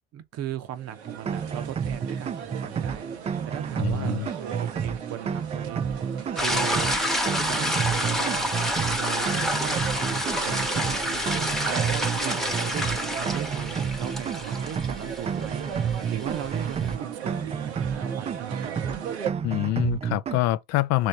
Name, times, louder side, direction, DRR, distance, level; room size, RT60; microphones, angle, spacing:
voice 1, 0.1-3.1 3.5-5.8 6.4-6.9 7.2-8.5 9.0-15.7 16.1-18.8, right 10 dB, 50° right, 0.8 m, -37 dB
sound 1, 0.7-19.3, right 8 dB, 85° right, 0.9 m, -38 dB
sound 2, 1.1-20.4, right 7 dB, 20° right, 0.3 m, -30 dB
voice 2, 3.8-4.3 19.4-21.1, left 15 dB, 55° left, 0.4 m, -25 dB
sound 3, 6.4-16.9, equal, ahead, 0.9 m, -29 dB
3.2 x 2.8 x 4.5 m
hypercardioid pair, 70°, 32 cm